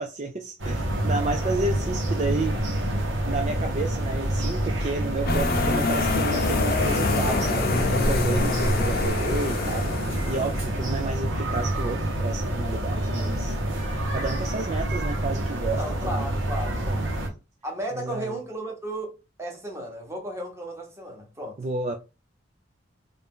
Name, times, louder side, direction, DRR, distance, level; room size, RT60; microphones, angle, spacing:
voice 1, 0.0-2.7 3.2-9.9 10.3-13.6 14.1-16.3 16.6-17.0 17.9-18.3 21.6-21.9, right 3 dB, 35° right, 0.4 m, -31 dB
sound 1, 0.6-17.3, right 1 dB, 75° right, 1.1 m, -27 dB
sound 2, 5.3-10.8, left 3 dB, 50° left, 0.6 m, -26 dB
voice 2, 13.1-13.5 15.8-17.0 17.6-21.6, right 1 dB, 15° right, 1.0 m, -35 dB
3.4 x 2.6 x 3.5 m
head